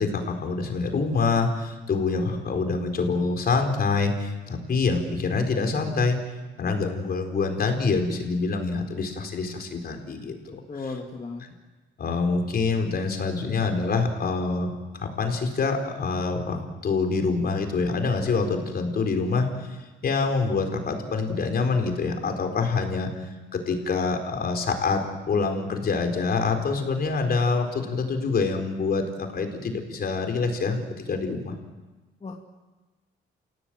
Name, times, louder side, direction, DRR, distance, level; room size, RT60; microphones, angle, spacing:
voice 1, 0.0-6.2 6.6-10.8 12.0-16.6 16.8-19.8 20.0-31.6, left 4 dB, 50° left, 5 dB, 4.5 m, -26 dB
voice 2, 10.7-11.4 32.2-32.4, left 3 dB, 30° left, 1 dB, 2.5 m, -35 dB
29.0 x 17.0 x 7.8 m, 1.2 s
cardioid pair, 90°, 20 cm